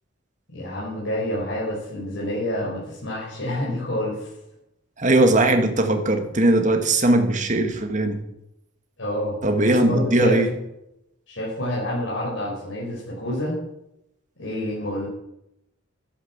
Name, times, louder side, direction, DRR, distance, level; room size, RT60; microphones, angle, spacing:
voice 1, 0.5-4.3 9.0-10.4 11.3-13.6 14.4-15.1, left 1 dB, 75° left, -6 dB, 5.8 m, -28 dB
voice 2, 5.0-8.2 9.4-10.5, right 1 dB, 40° right, 6 dB, 2.0 m, -19 dB
12.5 x 12.0 x 7.5 m, 0.84 s
head